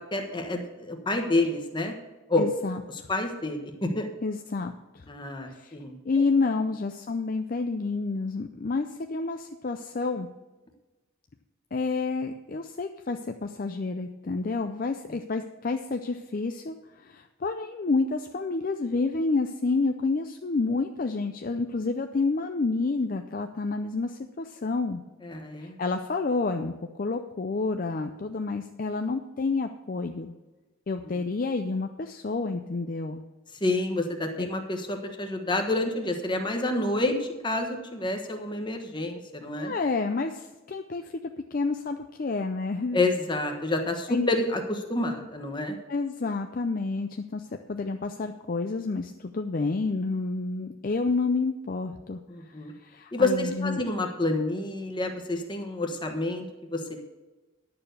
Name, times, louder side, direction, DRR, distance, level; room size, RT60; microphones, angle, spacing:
voice 1, 0.1-1.9 2.3-2.4 3.1-4.1 5.1-5.9 25.2-25.8 31.0-31.2 33.6-39.7 42.9-45.8 52.3-52.7 53.1-57.0, left 2 dB, 20° left, 4 dB, 1.2 m, -28 dB
voice 2, 2.4-3.1 4.2-5.0 5.5-5.7 6.0-10.3 11.7-16.8 17.0-25.0 25.6-30.3 30.9-33.2 34.4-34.5 39.6-41.1 41.5-43.0 44.1-44.3 45.9-52.2 52.8-53.8, left 3 dB, 40° left, 6 dB, 0.5 m, -29 dB
11.0 x 6.9 x 6.6 m, 1.2 s
head